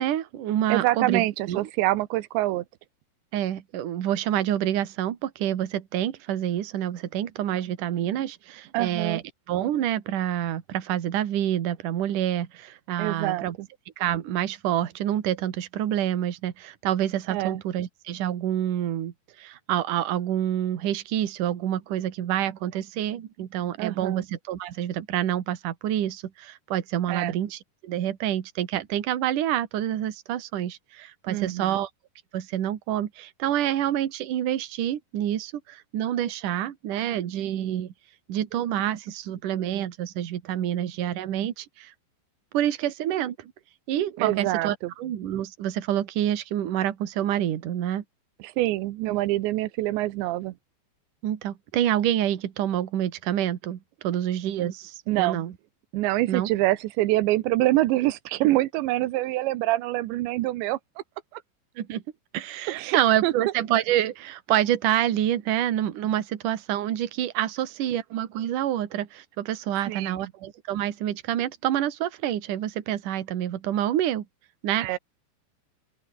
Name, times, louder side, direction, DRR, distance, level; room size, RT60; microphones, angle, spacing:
voice 1, 0.0-1.6 3.3-13.6 14.0-31.9 32.3-37.9 38.3-41.9 42.5-43.5 43.9-48.0 51.2-55.5 56.3-56.5 61.8-62.0 62.3-74.3 74.6-75.0, right 11 dB, 55° right, 3.0 m, -27 dB
voice 2, 0.7-2.6 8.7-9.2 13.0-13.7 17.3-17.6 23.8-24.2 27.1-27.4 31.3-31.8 44.2-44.9 48.4-50.5 55.1-55.4 55.9-60.8 61.3-61.4 62.7-63.3 69.9-70.3 74.8-75.0, right 17 dB, 90° right, 3.3 m, -25 dB
open air
omnidirectional pair, 5.1 m